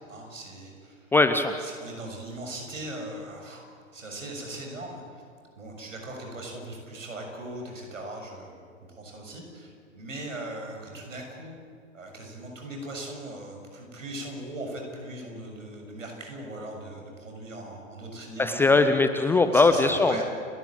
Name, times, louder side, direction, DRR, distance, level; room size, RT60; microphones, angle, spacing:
voice 1, 0.1-1.1 1.6-3.6 3.9-5.2 5.6-8.6 8.9-11.6 11.9-18.8 19.5-20.2, right 1 dB, 75° right, 2 dB, 7.0 m, -39 dB
voice 2, 1.1-1.5 18.4-20.2, left 3 dB, 5° left, 8 dB, 0.5 m, -20 dB
30.0 x 13.0 x 8.9 m, 2.3 s
figure-of-eight pair, 110°, 39 cm